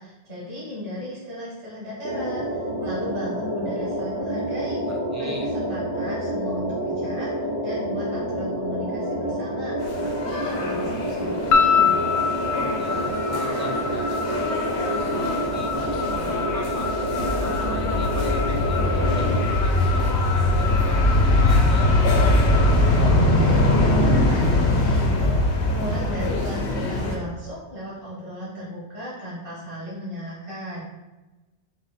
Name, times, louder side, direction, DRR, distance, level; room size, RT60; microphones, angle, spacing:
voice 1, 0.0-4.8 5.2-12.0 23.0-30.8, left 1 dB, 55° right, -7 dB, 1.4 m, -36 dB
sound 1, 2.0-19.4, equal, 90° right, 1.2 m, -28 dB
voice 2, 4.8-5.5 12.7-17.0 17.4-22.0, right 1 dB, 25° right, -2 dB, 0.4 m, -38 dB
sound 2, 9.8-27.2, left 1 dB, 80° left, 1.0 m, -22 dB
sound 3, 11.5-23.8, left 6 dB, 60° left, 0.6 m, -28 dB
4.2 x 2.9 x 4.2 m, 1.1 s
omnidirectional pair, 1.1 m